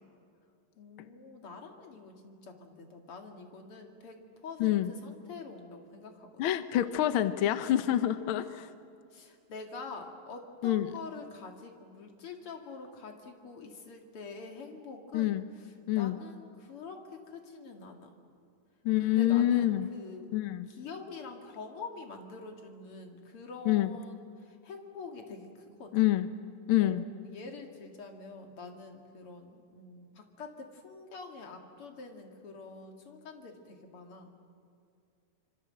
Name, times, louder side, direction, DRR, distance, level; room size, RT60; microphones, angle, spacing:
voice 1, 0.8-6.3 7.9-8.2 9.1-18.1 19.1-20.3 20.7-26.1 26.8-34.3, left 4 dB, 50° left, 4 dB, 2.9 m, -46 dB
voice 2, 4.6-4.9 6.4-8.7 10.6-10.9 15.1-15.4 15.9-16.2 18.8-19.9 20.3-20.7 23.7-23.9 25.9-26.3 26.7-27.0, left 13 dB, 80° left, 11 dB, 1.2 m, -27 dB
26.0 x 24.5 x 7.8 m, 2.4 s
omnidirectional pair, 3.4 m